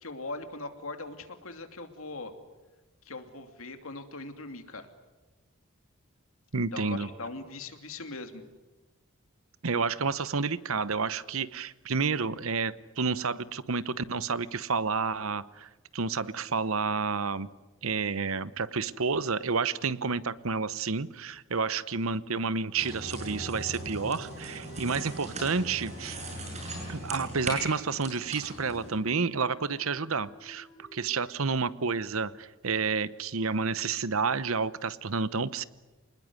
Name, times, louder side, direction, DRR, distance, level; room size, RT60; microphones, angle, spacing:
voice 1, 0.0-2.3 3.0-4.9 6.7-8.4, left 2 dB, 75° left, 7 dB, 2.8 m, -40 dB
voice 2, 6.5-7.1 9.6-17.5 17.8-26.2 26.9-30.7 30.9-35.6, right 4 dB, 75° right, 17 dB, 0.9 m, -30 dB
sound 1, 22.8-28.9, right 1 dB, 30° right, 6.8 m, -39 dB
sound 2, 23.3-32.5, right 1 dB, 40° left, 6.7 m, -53 dB
27.0 x 20.5 x 9.6 m, 1.2 s
head